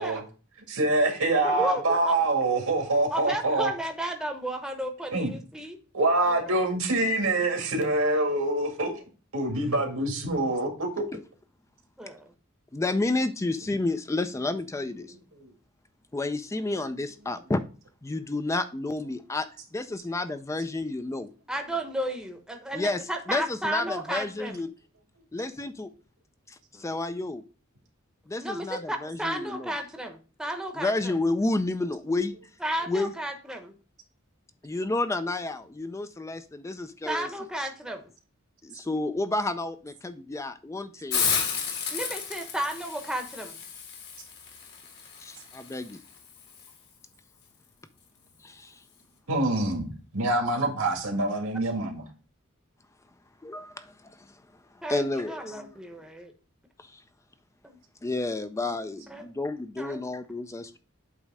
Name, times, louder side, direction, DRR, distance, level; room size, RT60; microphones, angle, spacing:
voice 1, 0.8-3.7 5.1-5.3 5.9-8.9 9.3-11.0 15.4-15.5 49.3-49.8 50.1-52.0, right 2 dB, 85° right, 3 dB, 1.9 m, -25 dB
voice 2, 1.4-2.2 3.1-5.8 6.2-6.6 12.0-12.3 21.5-24.6 26.7-26.9 28.4-31.1 32.6-33.7 37.0-38.1 41.9-43.6 54.8-56.3 57.6-57.8 59.1-59.3 59.8-60.0, right 1 dB, 5° right, 4 dB, 0.9 m, -33 dB
voice 3, 12.7-15.1 16.1-17.6 18.0-19.5 19.7-21.3 22.7-23.0 23.3-24.7 25.3-25.9 26.5-27.4 28.3-29.7 30.7-32.3 32.9-33.1 34.6-37.3 38.6-41.3 45.2-46.0 48.4-48.7 53.4-54.3 54.9-55.6 56.9-57.0 58.0-60.8, left 2 dB, 15° left, 10 dB, 0.4 m, -30 dB
Hiss, 41.1-46.7, left 6 dB, 50° left, 1.5 m, -33 dB
8.3 x 3.2 x 4.8 m, 0.37 s
head